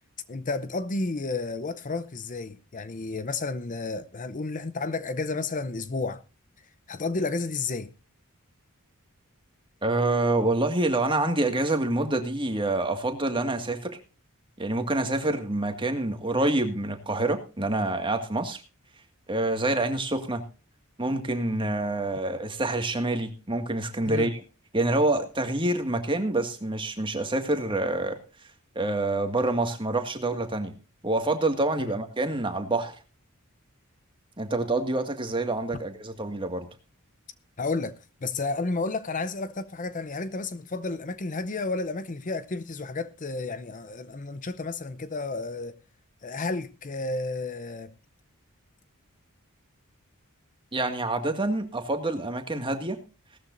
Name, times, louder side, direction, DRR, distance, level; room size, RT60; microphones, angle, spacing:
voice 1, 0.3-6.2 6.9-7.9 24.0-24.3 31.8-31.9 37.6-38.0 38.2-45.8 46.2-47.9, left 3 dB, 35° left, 0.6 m, -31 dB
voice 2, 9.8-14.0 14.6-18.6 19.3-20.4 21.0-24.4 24.7-28.2 28.8-30.7 31.0-33.0 34.4-36.7 50.7-53.0, right 2 dB, 25° right, 1.9 m, -27 dB
18.0 x 13.5 x 2.6 m
head